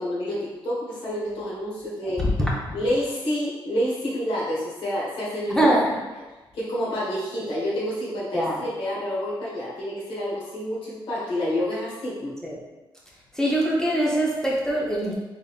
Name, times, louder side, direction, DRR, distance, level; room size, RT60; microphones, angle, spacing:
voice 1, 0.0-2.2 2.7-5.7 6.5-12.3, equal, 70° left, -7 dB, 1.1 m, -28 dB
voice 2, 2.0-2.8 5.5-6.0 8.3-8.6 12.4-12.6 13.3-15.1, right 1 dB, 5° left, -4 dB, 0.5 m, -23 dB
3.7 x 3.3 x 2.3 m, 1.1 s
wide cardioid pair, 160°, 9 cm